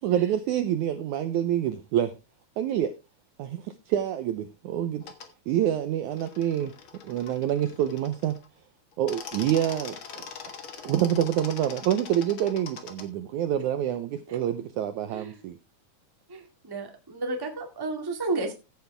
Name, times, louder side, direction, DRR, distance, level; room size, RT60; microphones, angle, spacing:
voice 1, 0.0-2.1 2.6-2.9 3.4-5.0 5.5-6.7 7.0-8.3 9.0-10.2 10.8-15.6, right 11 dB, 90° right, 11 dB, 1.7 m, -27 dB
sound 1, 5.0-5.3 6.1-8.5 8.9-13.1, left 6 dB, 60° left, 1.3 m, -42 dB
voice 2, 16.3-18.5, right 2 dB, 15° right, 4 dB, 0.9 m, -32 dB
15.0 x 8.2 x 3.4 m, 0.27 s
omnidirectional pair, 4.4 m